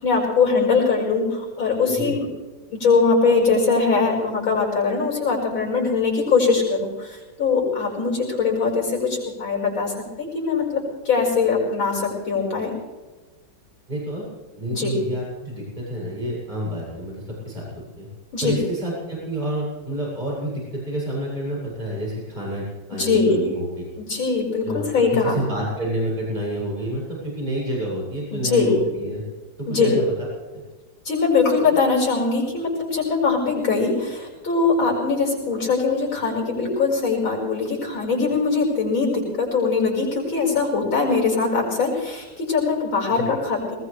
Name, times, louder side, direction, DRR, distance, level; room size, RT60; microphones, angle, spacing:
voice 1, 0.0-2.3 2.7-9.9 10.2-12.7 14.7-14.9 18.3-18.6 22.9-23.4 24.0-25.4 28.3-28.7 29.7-29.9 31.1-43.8, left 4 dB, 85° left, -2 dB, 6.2 m, -21 dB
voice 2, 13.9-14.2 14.6-17.7 18.0-18.1 18.4-23.7 24.6-29.2 29.6-30.1 30.5-30.6 43.1-43.3, right 1 dB, 20° right, -4 dB, 7.4 m, -29 dB
20.5 x 20.0 x 3.4 m, 1.2 s
omnidirectional pair, 2.1 m